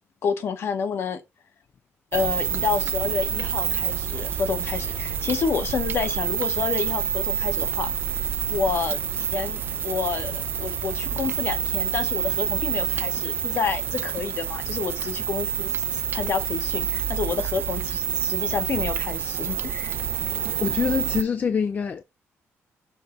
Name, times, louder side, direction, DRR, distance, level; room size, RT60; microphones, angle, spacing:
voice 1, 0.2-1.2 2.1-7.9 8.5-20.0, left 6 dB, 50° left, 1.2 m, -29 dB
sound 1, 2.1-21.2, right 8 dB, 45° right, 0.4 m, -27 dB
sound 2, 2.5-12.4, left 6 dB, 90° left, 1.3 m, -43 dB
voice 2, 20.6-22.0, left 6 dB, 35° left, 0.4 m, -25 dB
6.6 x 3.3 x 5.0 m
cardioid pair, 155°, 5 cm